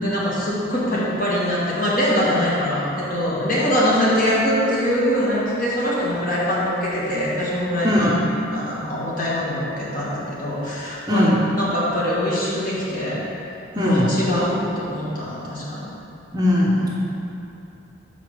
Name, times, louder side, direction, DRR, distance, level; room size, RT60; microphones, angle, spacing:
voice 1, 0.0-8.1 8.5-11.3 11.6-13.2 13.7-15.9, equal, 40° left, -7 dB, 1.5 m, -23 dB
voice 2, 7.8-8.2 11.1-11.4 13.8-14.1 16.3-16.9, left 1 dB, 20° right, -5 dB, 0.7 m, -19 dB
4.9 x 4.9 x 6.0 m, 2.8 s
head